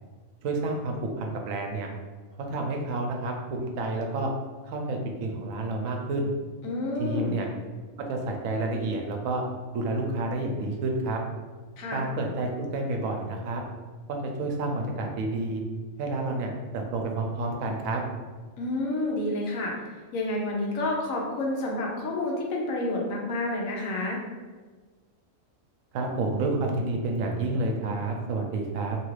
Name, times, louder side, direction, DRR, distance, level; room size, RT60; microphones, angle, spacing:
voice 1, 0.4-1.9 2.5-4.3 4.7-6.3 7.0-7.5 8.1-9.4 9.7-11.2 11.9-13.6 14.1-15.6 16.0-18.0 25.9-29.0, right 2 dB, 80° right, 2 dB, 1.0 m, -29 dB
voice 2, 6.6-7.3 11.8-12.0 18.6-19.7 20.1-24.2, left 2 dB, 80° left, -1 dB, 1.1 m, -29 dB
2.9 x 2.4 x 3.1 m, 1.4 s
omnidirectional pair, 1.4 m